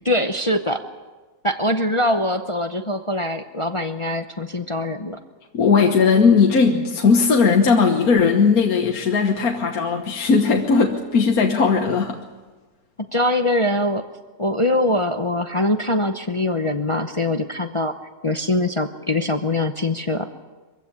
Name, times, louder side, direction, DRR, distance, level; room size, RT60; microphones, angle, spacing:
voice 1, 0.0-0.8 1.4-5.2 6.7-6.8 13.1-14.0 14.4-17.9 18.2-20.3, left 1 dB, 40° left, 7 dB, 0.4 m, -23 dB
voice 2, 5.5-12.2, left 5 dB, 55° left, 2 dB, 1.7 m, -17 dB
23.5 x 16.0 x 8.6 m, 1.3 s
omnidirectional pair, 1.9 m